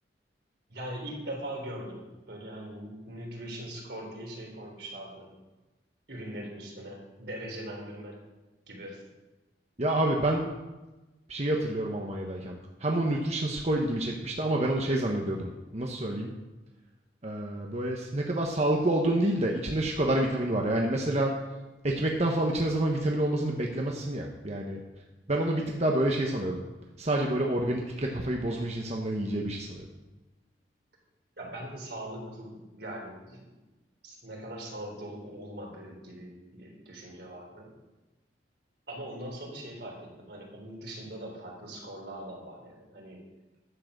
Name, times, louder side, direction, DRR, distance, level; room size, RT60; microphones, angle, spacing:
voice 1, 0.7-5.3 6.1-8.2 8.7-9.0 31.4-33.5 34.0-37.7 38.9-43.2, right 1 dB, 70° right, 0 dB, 3.5 m, -41 dB
voice 2, 9.8-10.5 11.3-16.3 17.2-21.4 21.8-24.8 25.3-26.6 27.0-29.9, right 1 dB, 40° right, 0 dB, 1.1 m, -28 dB
11.5 x 7.6 x 6.7 m, 1.1 s
head